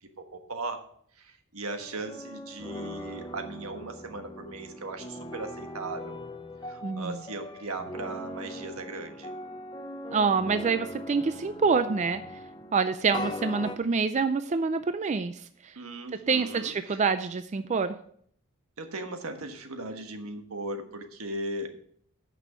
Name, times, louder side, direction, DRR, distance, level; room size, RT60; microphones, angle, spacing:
voice 1, 0.0-0.8 1.2-6.2 6.7-9.3 15.7-17.0 18.8-21.7, right 2 dB, 85° right, 6 dB, 1.4 m, -38 dB
sound 1, 1.8-13.8, left 1 dB, 20° left, 0.6 m, -40 dB
voice 2, 6.8-7.2 10.1-12.2 12.7-15.7 16.3-18.0, right 5 dB, 35° right, 10 dB, 0.4 m, -26 dB
9.0 x 6.2 x 5.6 m, 0.62 s
head